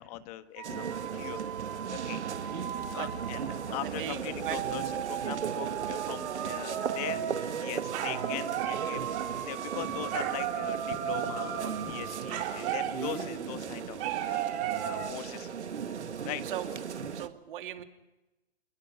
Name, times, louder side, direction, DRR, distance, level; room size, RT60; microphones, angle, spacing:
voice 1, 0.0-1.4 1.9-2.2 2.5-7.2 7.6-14.5 14.8-15.5 15.8-16.0 16.2-16.4, left 14 dB, 35° left, 10 dB, 1.6 m, -41 dB
sound 1, 0.6-3.7 4.4-13.4 14.0-15.1, right 11 dB, 30° right, 2.6 m, -36 dB
sound 2, 0.6-17.3, right 7 dB, 80° right, 1.7 m, -37 dB
voice 2, 3.8-4.6 5.1-5.2 12.0-12.8 16.4-16.7 17.1-17.8, right 11 dB, 50° right, 6 dB, 2.7 m, -39 dB
27.0 x 23.0 x 5.9 m, 0.98 s
hypercardioid pair, 140°, 34 cm